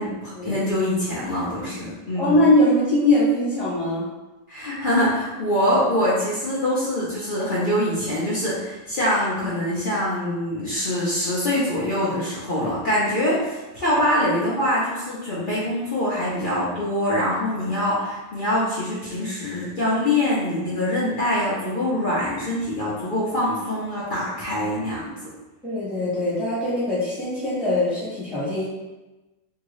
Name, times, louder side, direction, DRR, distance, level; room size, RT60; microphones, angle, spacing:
voice 1, 0.0-2.4 4.5-25.1, left 1 dB, 80° left, -9 dB, 0.4 m, -24 dB
voice 2, 2.2-4.1 25.6-28.6, left 1 dB, ahead, -10 dB, 0.9 m, -21 dB
2.9 x 2.7 x 3.0 m, 1.1 s
omnidirectional pair, 1.8 m